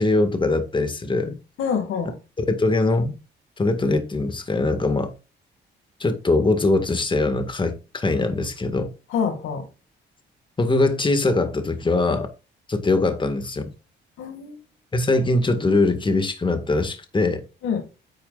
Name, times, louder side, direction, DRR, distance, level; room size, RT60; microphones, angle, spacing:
voice 1, 0.0-1.4 2.4-3.2 3.6-5.1 6.0-8.9 10.6-12.3 12.7-13.7 14.9-17.4, left 2 dB, 25° left, 2.0 m, -22 dB
voice 2, 1.6-2.1 9.1-9.7 14.2-14.6 17.6-17.8, left 6 dB, 85° left, 2.3 m, -26 dB
9.7 x 8.6 x 2.5 m
cardioid pair, 90°, 20 cm